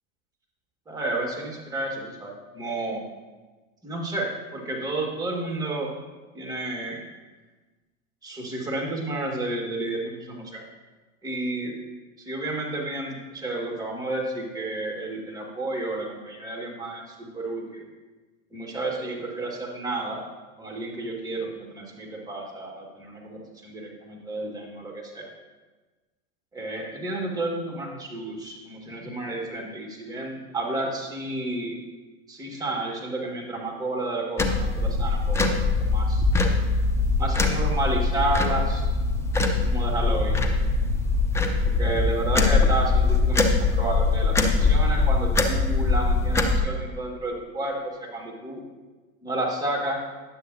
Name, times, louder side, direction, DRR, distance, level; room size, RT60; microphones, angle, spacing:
voice 1, 0.9-3.0 3.8-5.9 6.3-7.0 8.2-10.6 11.2-11.7 12.2-17.8 18.5-20.2 20.6-25.3 26.5-31.8 32.3-36.2 37.2-38.8 39.6-40.4 41.8-48.6 49.2-50.0, right 2 dB, 10° right, -1 dB, 1.6 m, -31 dB
sound 1, 34.4-46.6, left 3 dB, 5° left, 0.4 m, -22 dB
9.8 x 7.1 x 2.6 m, 1.2 s
hypercardioid pair, 95°, 42 cm